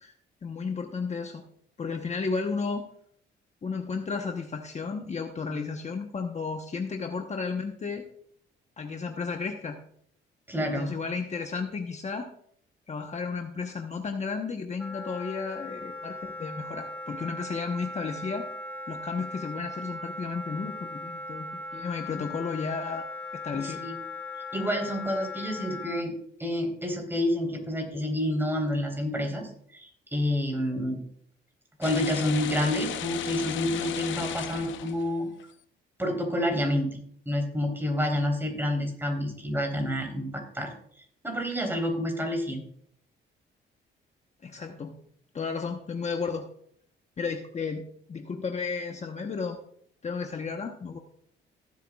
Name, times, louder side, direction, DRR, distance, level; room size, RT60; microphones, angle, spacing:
voice 1, 0.4-1.4 1.8-2.8 3.6-8.0 8.8-9.8 10.6-12.3 12.9-18.5 18.9-23.8 44.4-45.0 45.3-46.5 47.2-49.6 50.0-51.0, left 5 dB, 35° left, 4 dB, 1.0 m, -33 dB
voice 2, 10.5-10.9 23.5-24.0 24.5-26.1 26.4-31.0 31.8-35.3 36.0-36.9 37.3-40.7 41.2-42.6, left 1 dB, 10° right, 2 dB, 3.6 m, -28 dB
Wind instrument woodwind instrument, 14.8-26.1, left 2 dB, 5° left, 1.6 m, -39 dB
sound 1, 31.8-35.4, left 11 dB, 75° left, 0.7 m, -35 dB
18.0 x 8.1 x 2.4 m, 0.65 s
cardioid pair, 90°, 20 cm